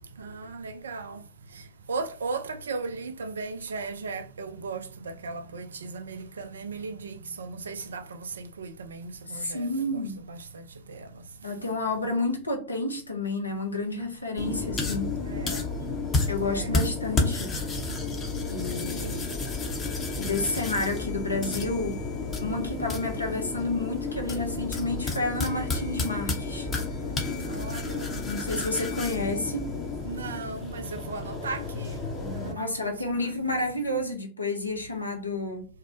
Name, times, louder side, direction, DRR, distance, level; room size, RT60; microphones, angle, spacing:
voice 1, 0.0-9.7 10.3-11.5 15.2-15.7 16.4-16.8 19.0-19.2 27.4-28.2 30.0-33.3, right 4 dB, 75° right, 0.3 m, -37 dB
voice 2, 9.3-10.2 11.4-15.1 16.3-17.5 18.5-19.2 20.2-22.0 22.4-26.7 28.3-29.7 32.5-35.6, left 2 dB, 85° left, 0.6 m, -30 dB
sound 1, 14.4-32.5, left 3 dB, 25° left, 0.6 m, -31 dB
2.6 x 2.0 x 2.6 m
figure-of-eight pair, 95°, 0 cm